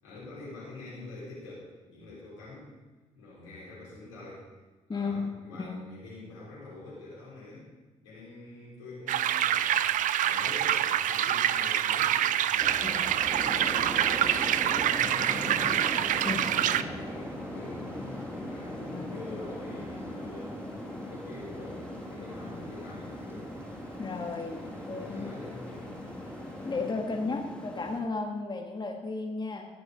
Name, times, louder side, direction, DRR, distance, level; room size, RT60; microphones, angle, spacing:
voice 1, 0.0-2.7 3.1-4.5 4.9-7.7 8.0-14.8 15.1-15.9 16.1-23.5 24.4-25.9, left 2 dB, 85° left, -8 dB, 4.9 m, -46 dB
voice 2, 4.9-5.3 5.6-5.7 12.8-13.0 16.2-16.7 18.9-19.2 24.0-24.6 24.9-25.2 26.6-29.7, left 3 dB, 30° left, 2 dB, 1.7 m, -34 dB
sound 1, 9.1-16.8, right 11 dB, 55° right, 0.5 m, -26 dB
sound 2, 12.6-26.9, right 1 dB, 15° right, 1.8 m, -44 dB
navy ship night, 13.3-28.0, left 1 dB, 5° left, 2.5 m, -41 dB
18.0 x 6.9 x 5.5 m, 1.2 s
hypercardioid pair, 45°, 16 cm